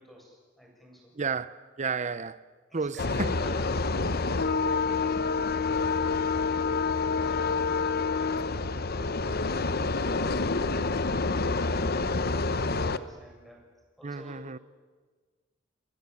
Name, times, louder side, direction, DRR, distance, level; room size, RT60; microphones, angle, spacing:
voice 1, 0.0-1.1 2.7-8.4 11.4-13.6 14.0-14.4, left 1 dB, ahead, 8.0 m, -50 dB
voice 2, 1.2-2.4 2.7-3.3 14.0-14.6, right 5 dB, 40° right, 0.7 m, -32 dB
sound 1, 3.0-13.0, left 4 dB, 55° left, 1.0 m, -27 dB
30.0 x 21.5 x 8.5 m
head